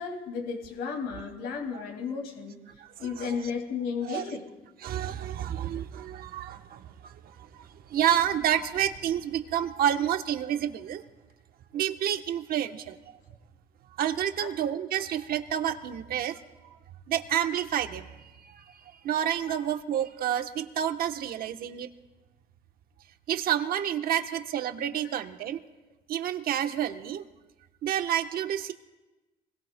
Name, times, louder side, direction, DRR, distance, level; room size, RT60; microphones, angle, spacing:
voice 1, 0.0-2.6 3.0-4.4 8.5-8.6 14.4-14.5 19.5-19.6, left 5 dB, 85° left, 3 dB, 2.1 m, -34 dB
voice 2, 2.8-3.3 4.1-4.2 4.8-11.0 11.7-13.0 14.0-16.4 16.6-16.8 17.1-21.9 23.3-25.6 26.1-27.2 27.8-28.7, right 10 dB, 60° right, 7 dB, 1.0 m, -29 dB
26.0 x 21.5 x 2.2 m, 1.1 s
cardioid pair, 110°, 17 cm